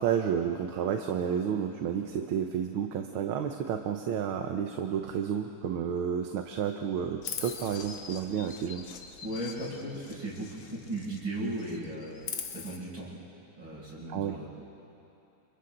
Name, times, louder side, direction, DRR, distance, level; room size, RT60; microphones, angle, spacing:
voice 1, 0.0-8.8 14.1-14.4, right 8 dB, 85° right, 5 dB, 1.8 m, -31 dB
Chirp tweet, 7.2-11.2 11.5-12.8, left 7 dB, 70° left, 1.9 m, -42 dB
voice 2, 9.2-12.2 12.5-13.1 13.6-14.5, right 1 dB, 70° right, -7 dB, 7.5 m, -36 dB
29.5 x 29.0 x 3.9 m, 2.9 s
omnidirectional pair, 2.2 m